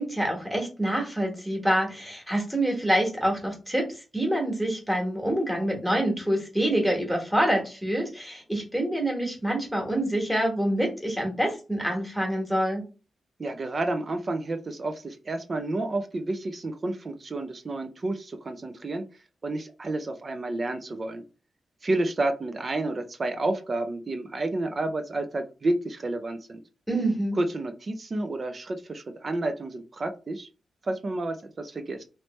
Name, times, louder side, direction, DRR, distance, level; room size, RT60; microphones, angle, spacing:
voice 1, 0.0-12.8 26.9-27.4, right 1 dB, ahead, 0 dB, 1.3 m, -26 dB
voice 2, 13.4-19.0 19.4-21.2 21.8-26.6 27.4-30.5 30.8-32.0, right 2 dB, 35° right, 6 dB, 0.4 m, -30 dB
3.1 x 3.0 x 3.0 m, 0.32 s
wide cardioid pair, 130°, 0 cm